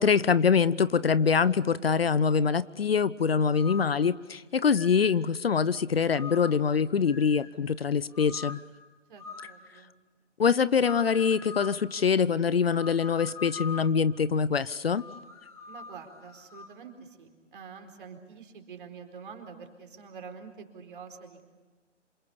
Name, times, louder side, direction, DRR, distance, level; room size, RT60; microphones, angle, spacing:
voice 1, 0.0-8.6 10.4-15.0, left 6 dB, 50° left, 18 dB, 0.8 m, -24 dB
sound 1, 3.4-4.0 4.7-5.2 6.1-6.7 7.1-7.6 8.1-8.7 9.2-9.6 10.8-11.8 12.7-14.0 14.9-16.8, left 5 dB, 5° left, 1.7 m, -43 dB
voice 2, 9.1-9.9 15.7-21.4, right 6 dB, 45° right, 4 dB, 4.3 m, -46 dB
27.5 x 26.5 x 7.0 m, 1.3 s
figure-of-eight pair, 145°, 37 cm